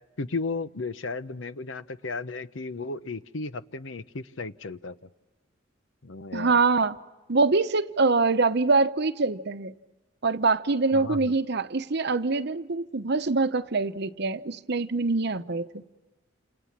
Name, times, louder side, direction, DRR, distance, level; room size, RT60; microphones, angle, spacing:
voice 1, 0.2-5.0 6.0-6.6 10.9-11.3, left 3 dB, 75° left, 0.9 m, -34 dB
voice 2, 6.3-7.0 7.3-9.7 10.2-15.8, right 3 dB, 60° right, 0.9 m, -24 dB
29.0 x 28.0 x 7.4 m
head